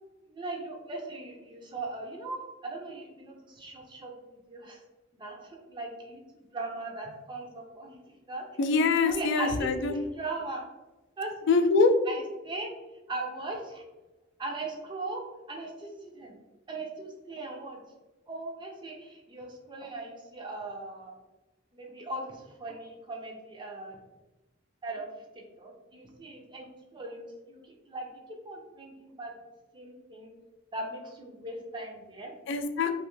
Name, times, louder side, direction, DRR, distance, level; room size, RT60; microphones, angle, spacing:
voice 1, 0.3-4.8 5.2-8.0 8.3-8.4 9.0-10.6 11.2-11.5 12.1-12.7 13.1-13.8 14.4-15.2 15.5-16.4 16.7-17.8 18.3-21.1 21.7-24.0 24.8-25.1 25.6-26.7 26.9-28.1 28.4-29.3 29.7-30.3 30.7-32.3 32.9-33.0, right 2 dB, 25° right, 0 dB, 0.4 m, -39 dB
voice 2, 8.6-10.0 11.5-12.0 32.5-32.9, left 4 dB, 65° left, 8 dB, 0.3 m, -24 dB
2.5 x 2.3 x 2.9 m, 1.1 s
head